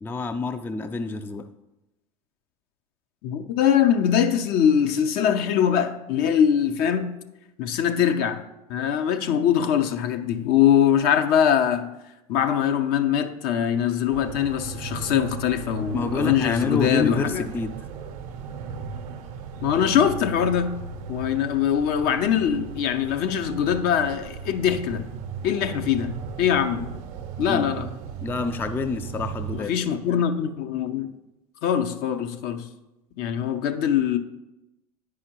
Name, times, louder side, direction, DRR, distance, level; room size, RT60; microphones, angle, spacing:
voice 1, 0.0-1.5 15.9-17.7 27.5-27.7 28.2-29.8, left 4 dB, 10° left, 0.4 m, -27 dB
voice 2, 3.2-7.2 7.6-8.4 8.7-11.9 12.3-17.4 19.6-20.7 21.1-25.0 25.4-26.1 26.4-26.9 27.4-27.9 29.5-31.1 31.6-32.7 33.2-34.2, left 9 dB, 50° left, 0.6 m, -22 dB
sound 1, 14.1-29.6, right 6 dB, 60° right, 0.6 m, -36 dB
9.4 x 4.9 x 2.9 m
hypercardioid pair, 80°, 19 cm